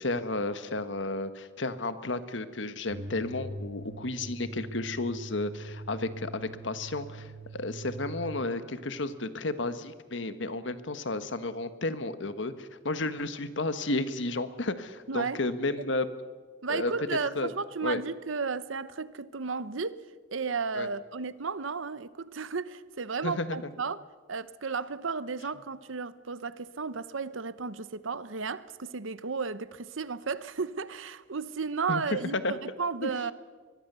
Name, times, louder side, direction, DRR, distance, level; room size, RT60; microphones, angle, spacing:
voice 1, 0.0-7.3 7.5-16.1 16.7-16.9 17.3-17.5 17.8-18.0 20.7-20.9 23.2-23.7 31.9-32.0 32.3-32.5 33.0-33.1, left 2 dB, 75° left, 1.4 m, -32 dB
sound 1, 2.9-8.5, right 2 dB, 40° right, 1.8 m, -42 dB
voice 2, 15.1-15.4 15.8-15.9 16.6-20.0 20.3-24.0 24.3-33.3, right 5 dB, 90° right, 0.9 m, -34 dB
24.5 x 21.5 x 6.9 m
head